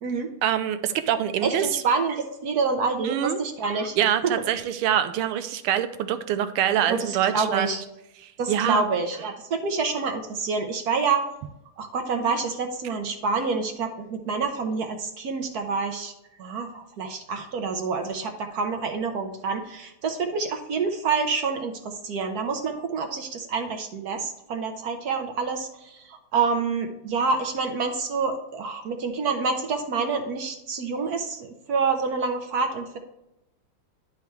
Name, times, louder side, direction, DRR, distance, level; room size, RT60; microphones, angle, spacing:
voice 1, 0.4-1.7 3.0-3.4 4.0-7.8 8.2-8.8, right 10 dB, 85° right, 10 dB, 1.5 m, -25 dB
voice 2, 1.4-4.0 4.2-4.4 6.8-7.8 8.4-11.3 11.8-16.1 16.4-33.0, right 4 dB, 60° right, 6 dB, 1.0 m, -27 dB
10.5 x 4.6 x 3.2 m, 0.87 s
omnidirectional pair, 2.4 m